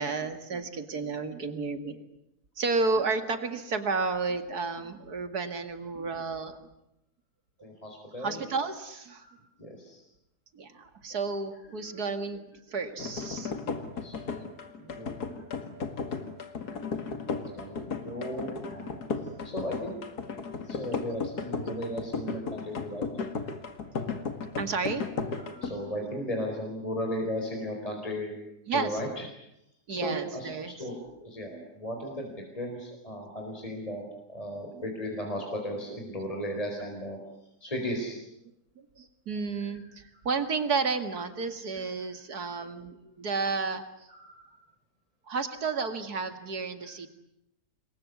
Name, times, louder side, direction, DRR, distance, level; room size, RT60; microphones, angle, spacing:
voice 1, 0.0-2.1 2.6-6.6 8.2-9.3 10.5-13.6 14.8-14.9 15.3-15.5 16.2-16.3 16.6-16.8 17.3-17.9 18.9-19.0 20.5-20.6 21.0-21.1 24.5-26.1 28.7-29.1 29.9-30.9 31.5-31.7 31.9-32.0 34.7-35.0 35.9-36.0 38.8-44.1 45.3-47.1, right 4 dB, 80° right, 9 dB, 2.7 m, -32 dB
voice 2, 7.6-8.4 9.2-10.0 11.9-12.0 14.0-15.2 17.6-19.0 19.4-20.0 20.6-23.1 25.3-28.3 28.7-29.2 29.9-30.5 30.8-34.0 34.3-37.2 37.6-38.2 44.1-44.6, equal, 20° left, 1 dB, 4.8 m, -36 dB
sound 1, 13.0-25.7, left 5 dB, 85° left, 2.6 m, -35 dB
27.5 x 21.5 x 9.6 m, 0.83 s
omnidirectional pair, 1.6 m